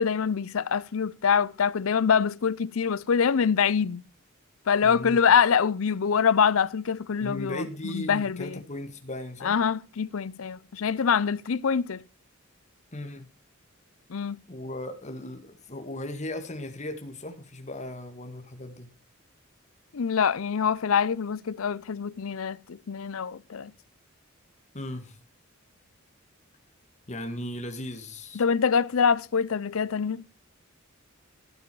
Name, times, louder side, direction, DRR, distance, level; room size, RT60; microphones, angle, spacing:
voice 1, 0.0-4.0 4.7-8.6 9.4-12.0 14.1-14.4 19.9-23.7 28.3-30.3, left 6 dB, 75° left, 0.5 m, -25 dB
voice 2, 4.8-5.2 7.2-9.6 12.9-13.3 14.5-18.9 24.7-25.2 27.1-28.4, left 1 dB, 35° left, 2.2 m, -37 dB
16.0 x 8.5 x 4.7 m
head